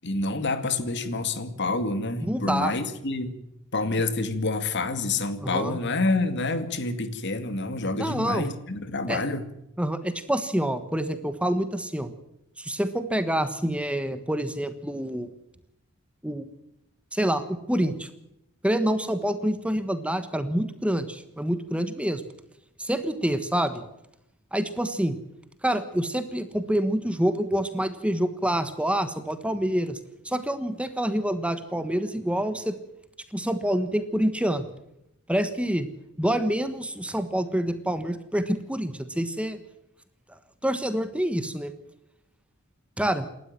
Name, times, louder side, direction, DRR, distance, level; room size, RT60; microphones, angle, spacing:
voice 1, 0.0-3.3 3.7-9.5, left 3 dB, 55° left, 10 dB, 2.3 m, -28 dB
voice 2, 2.2-2.7 5.4-5.8 8.0-8.5 9.1-9.2 9.8-12.1 12.6-15.3 16.2-16.5 17.1-18.1 18.6-22.2 22.8-23.8 24.5-25.2 25.6-30.0 30.2-32.8 33.3-34.6 35.3-35.9 36.2-39.6 40.6-41.7 43.0-43.3, right 1 dB, 5° right, 10 dB, 1.3 m, -27 dB
28.5 x 12.5 x 7.6 m, 0.84 s
head